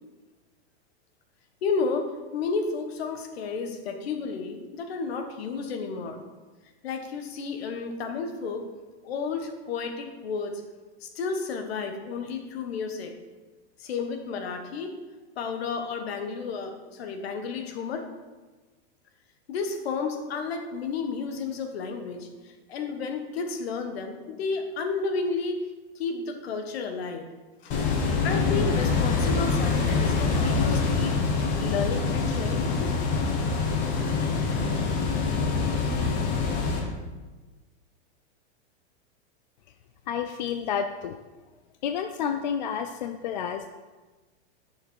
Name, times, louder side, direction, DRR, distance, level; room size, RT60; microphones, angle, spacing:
voice 1, 1.6-6.2 6.8-8.7 9.0-10.6 11.0-13.1 13.8-14.9 15.4-18.1 19.5-25.7 25.9-27.3 27.6-27.7 28.2-31.3 31.6-32.9, left 4 dB, 60° left, 5 dB, 1.4 m, -32 dB
sound 1, 27.7-36.8, left 4 dB, 25° left, 1.1 m, -25 dB
voice 2, 40.1-41.2 41.8-43.7, left 7 dB, 45° left, 7 dB, 0.4 m, -30 dB
10.5 x 6.6 x 4.6 m, 1.3 s
supercardioid pair, 175°, 34 cm